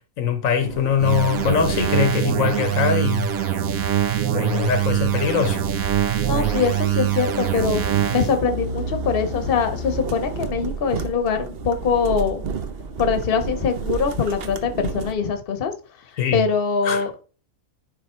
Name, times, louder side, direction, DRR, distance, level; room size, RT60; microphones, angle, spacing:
voice 1, 0.2-3.3 4.3-5.6 16.1-16.4 16.8-17.2, left 7 dB, 75° left, 1.2 m, -22 dB
sound 1, 0.6-15.1, right 4 dB, 50° right, 0.9 m, -32 dB
sound 2, 1.0-8.4, right 11 dB, 85° right, 1.4 m, -23 dB
voice 2, 6.2-7.8 8.1-12.4 13.0-15.7 16.3-17.1, left 5 dB, 45° left, 1.0 m, -23 dB
10.5 x 3.5 x 4.4 m
omnidirectional pair, 1.4 m